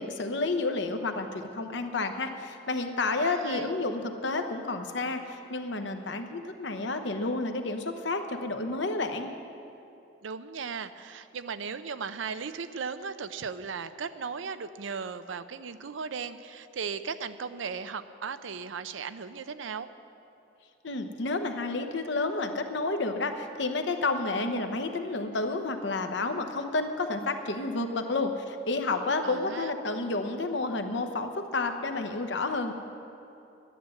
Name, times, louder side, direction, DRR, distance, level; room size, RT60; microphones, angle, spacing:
voice 1, 0.0-9.4 20.8-32.7, left 3 dB, 70° left, 6 dB, 0.9 m, -30 dB
voice 2, 3.2-3.7 10.2-19.9 29.2-29.7, right 5 dB, 85° right, 12 dB, 0.5 m, -37 dB
11.0 x 10.0 x 7.7 m, 2.8 s
head